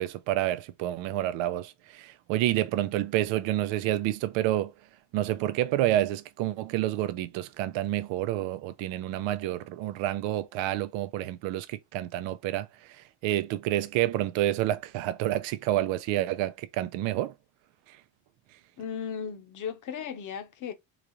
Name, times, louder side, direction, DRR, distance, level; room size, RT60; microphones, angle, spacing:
voice 1, 0.0-4.7 5.1-12.7 13.2-17.3, right 14 dB, 90° right, 0.7 m, -29 dB
voice 2, 18.8-20.7, left 7 dB, 45° left, 0.9 m, -36 dB
4.0 x 2.4 x 3.0 m
cardioid pair, 155°, 44 cm